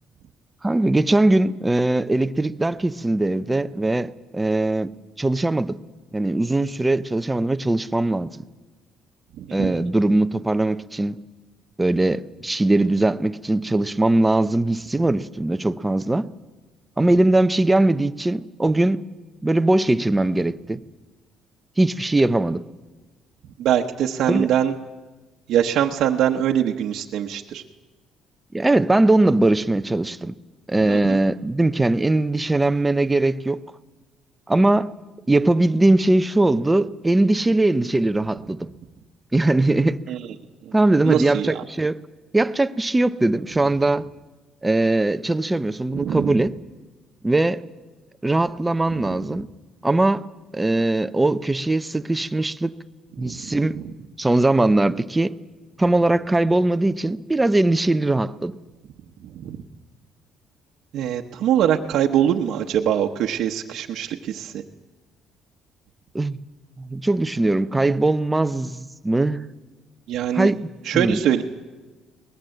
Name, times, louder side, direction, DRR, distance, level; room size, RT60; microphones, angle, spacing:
voice 1, 0.6-4.9 5.2-5.8 6.1-8.4 9.5-11.2 11.8-16.3 17.0-19.0 19.4-20.8 21.8-22.6 24.3-24.5 28.5-30.3 30.7-33.6 34.5-34.9 35.3-38.7 39.3-40.0 40.7-42.0 42.3-44.1 44.6-46.5 47.2-47.6 48.2-49.5 49.8-50.3 50.5-52.7 53.2-53.8 54.2-55.3 55.8-58.6 66.1-66.4 66.8-69.4 70.3-70.7 70.9-71.2, right 2 dB, 10° right, 0.6 m, -20 dB
voice 2, 9.4-9.8 23.6-24.7 25.5-27.6 30.9-31.2 40.1-40.2 40.6-40.7 41.0-41.6 45.9-46.3 49.0-49.1 53.2-53.6 59.2-59.6 60.9-64.6 70.1-70.5 70.8-71.4, right 10 dB, 70° right, 1.0 m, -23 dB
22.0 x 19.5 x 7.8 m
cardioid pair, 125°, 0 cm